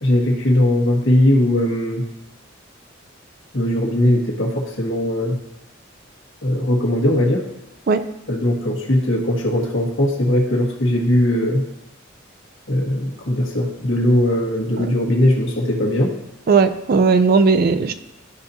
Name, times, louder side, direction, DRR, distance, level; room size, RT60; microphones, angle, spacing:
voice 1, 0.0-2.0 3.5-5.4 6.4-7.4 8.3-11.6 12.7-16.1, left 1 dB, 75° left, -1 dB, 1.5 m, -19 dB
voice 2, 16.5-17.9, right 4 dB, 50° right, 11 dB, 0.4 m, -16 dB
12.0 x 4.1 x 2.8 m, 0.88 s
head